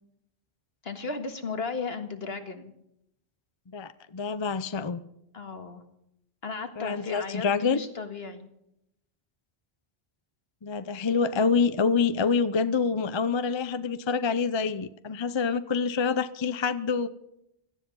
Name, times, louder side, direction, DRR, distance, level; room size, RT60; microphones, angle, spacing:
voice 1, 0.8-2.7 5.3-5.8 6.4-8.5, left 4 dB, 65° left, 7 dB, 1.9 m, -35 dB
voice 2, 3.7-5.0 6.8-7.8 10.6-17.1, left 5 dB, 30° left, 13 dB, 0.6 m, -26 dB
17.5 x 13.5 x 5.5 m, 0.79 s
omnidirectional pair, 1.1 m